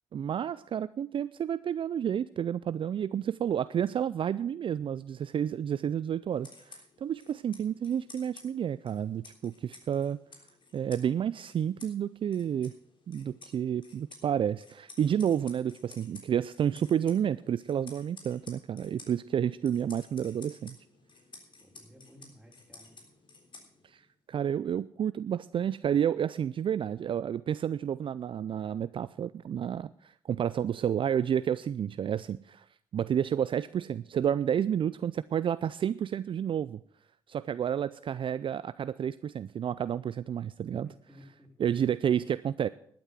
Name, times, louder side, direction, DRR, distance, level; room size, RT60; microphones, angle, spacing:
voice 1, 0.1-10.2 10.7-12.7 13.1-20.8 23.8-24.0 24.3-32.6 32.9-36.8 37.3-40.9 41.6-42.7, right 9 dB, 50° right, 16 dB, 0.4 m, -30 dB
sound 1, 6.3-24.1, left 3 dB, 50° left, 3.5 m, -54 dB
voice 2, 21.6-23.0 40.8-41.5 42.2-42.4, equal, 5° right, -1 dB, 5.2 m, -55 dB
11.5 x 9.0 x 7.5 m, 0.64 s
hypercardioid pair, 50°, 11 cm